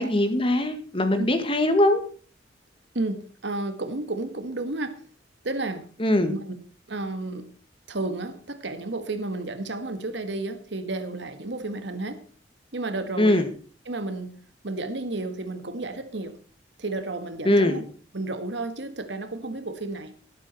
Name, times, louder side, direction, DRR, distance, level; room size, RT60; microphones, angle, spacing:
voice 1, 0.0-2.0 6.0-6.3 13.2-13.5 17.5-17.8, left 1 dB, 30° left, 1.8 m, -21 dB
voice 2, 2.9-5.0 5.4-5.9 6.2-6.6 6.9-7.5 7.9-12.2 12.7-13.5 13.8-16.4 16.8-17.8 18.1-20.1, right 2 dB, 70° right, 1.6 m, -32 dB
12.5 x 12.0 x 4.3 m
head